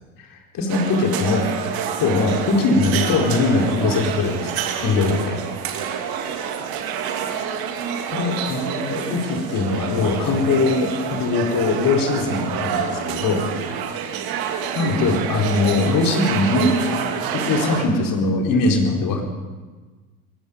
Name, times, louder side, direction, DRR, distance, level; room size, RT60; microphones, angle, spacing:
voice 1, 0.3-1.5 2.0-5.4 8.1-13.4 14.7-16.7 17.3-19.2, left 3 dB, 45° left, 1 dB, 4.6 m, -21 dB
sound 1, 0.7-17.8, right 7 dB, 50° right, 2.6 m, -28 dB
24.0 x 21.5 x 5.3 m, 1.3 s
figure-of-eight pair, 65°, 45 cm